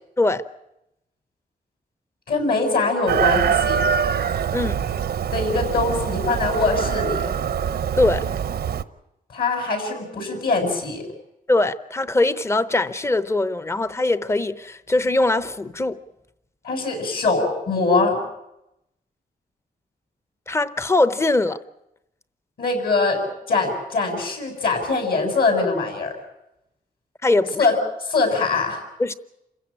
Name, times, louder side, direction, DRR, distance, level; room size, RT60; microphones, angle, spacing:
voice 1, 2.3-3.8 5.3-7.3 9.3-11.1 16.6-18.2 22.6-26.1 27.6-28.8, left 3 dB, 65° left, 4 dB, 7.4 m, -22 dB
Chicken rooster, 3.1-8.8, right 8 dB, 75° right, 0.8 m, -24 dB
voice 2, 11.5-16.0 20.5-21.6 27.2-27.6 29.0-29.1, left 2 dB, 15° left, 13 dB, 0.8 m, -21 dB
28.5 x 16.0 x 8.7 m, 0.87 s
wide cardioid pair, 165°, 16 cm